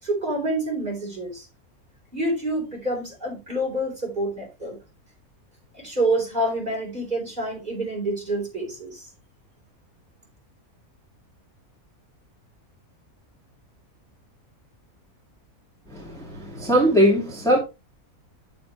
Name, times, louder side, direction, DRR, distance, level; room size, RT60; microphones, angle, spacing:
voice 1, 0.0-1.5 2.1-4.8 5.7-9.1, right 1 dB, 30° right, 4.3 m, -27 dB
voice 2, 15.9-17.6, equal, ahead, 2.3 m, -20 dB
8.7 x 7.1 x 3.1 m
omnidirectional pair, 1.5 m